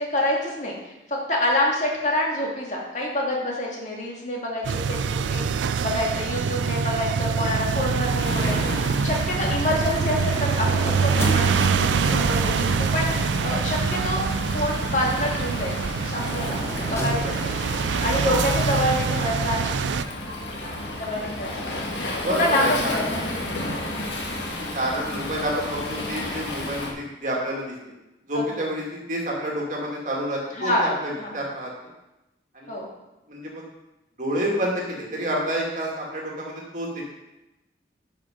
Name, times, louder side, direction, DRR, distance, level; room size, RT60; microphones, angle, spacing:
voice 1, 0.1-8.7 9.0-11.5 11.8-14.2 14.5-16.6 16.9-17.5 18.0-19.6 21.0-21.8 22.3-23.4 23.8-24.1 28.3-28.4 30.5-30.9 31.2-31.3 32.7-32.9, left 1 dB, 40° left, -2 dB, 2.3 m, -27 dB
sound 1, 4.6-20.0, right 5 dB, 85° right, 0.4 m, -25 dB
Waves surf, 8.2-26.9, left 1 dB, 80° left, 1.7 m, -32 dB
sound 2, 9.1-18.0, equal, 15° left, 1.2 m, -38 dB
voice 2, 22.2-23.0 24.7-27.8 28.3-31.7 32.5-32.7 33.3-33.7 34.2-37.0, right 1 dB, 45° right, -2 dB, 2.1 m, -29 dB
11.5 x 5.9 x 5.1 m, 0.98 s
head